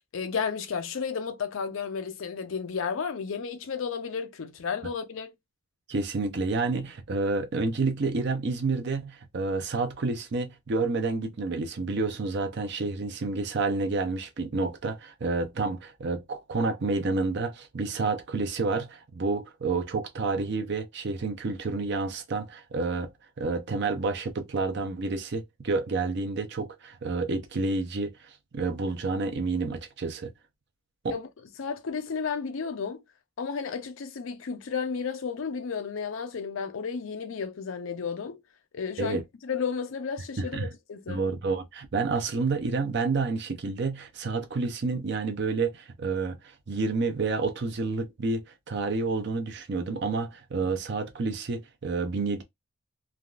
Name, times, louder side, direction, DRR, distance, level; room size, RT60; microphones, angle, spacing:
voice 1, 0.1-5.3 31.1-31.3 31.6-33.0 33.4-38.4 38.7-41.3, left 6 dB, 75° left, 0.5 m, -33 dB
voice 2, 5.9-23.1 23.4-30.3 31.0-31.2 39.0-39.2 40.4-40.7 41.1-52.4, right 3 dB, 55° right, 0.5 m, -29 dB
3.4 x 2.3 x 2.3 m
head